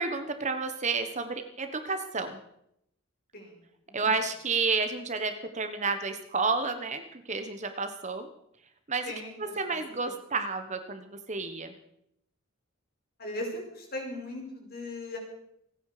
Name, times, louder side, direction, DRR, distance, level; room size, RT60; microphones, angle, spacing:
voice 1, 0.0-2.4 3.9-8.3 8.9-9.1 9.4-11.8, right 4 dB, 35° right, 8 dB, 1.3 m, -31 dB
voice 2, 9.7-10.1 13.2-15.2, left 1 dB, 50° left, 1 dB, 5.1 m, -38 dB
28.5 x 9.6 x 5.0 m, 0.75 s
head